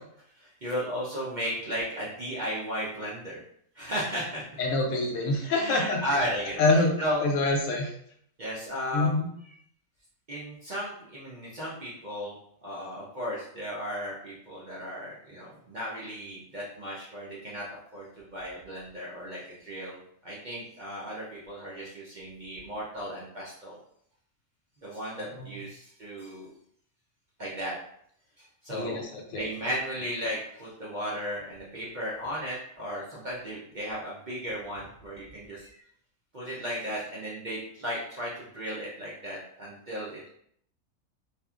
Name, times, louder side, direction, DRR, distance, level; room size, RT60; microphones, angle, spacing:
voice 1, 0.4-3.4 3.7-4.4 5.5-7.2 8.4-9.1 10.3-12.4 12.6-17.6 17.9-23.8 24.8-26.5 27.4-27.7 28.4-35.8 36.3-40.2, equal, 50° right, -7 dB, 0.6 m, -35 dB
voice 2, 4.6-6.2 6.6-6.9 7.2-7.9 8.9-9.3 25.3-25.5 28.7-29.4, left 2 dB, 70° left, 1 dB, 0.9 m, -26 dB
2.8 x 2.4 x 2.3 m, 0.66 s
omnidirectional pair, 1.4 m